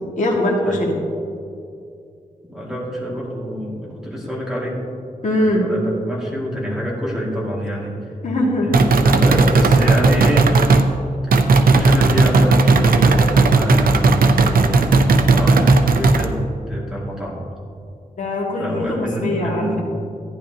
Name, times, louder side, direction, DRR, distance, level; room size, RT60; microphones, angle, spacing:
voice 1, 0.2-1.0 5.2-5.6 8.2-8.9 18.2-19.7, left 1 dB, 60° left, -2 dB, 2.1 m, -21 dB
voice 2, 2.4-4.8 5.3-8.2 8.6-10.9 11.6-16.4 16.7-17.4 18.6-19.8, equal, 5° right, -6 dB, 2.4 m, -26 dB
sound 1, 8.7-10.9 11.3-16.3, right 3 dB, 80° right, 0.6 m, -14 dB
14.5 x 10.0 x 2.9 m, 2.5 s
wide cardioid pair, 140°, 15 cm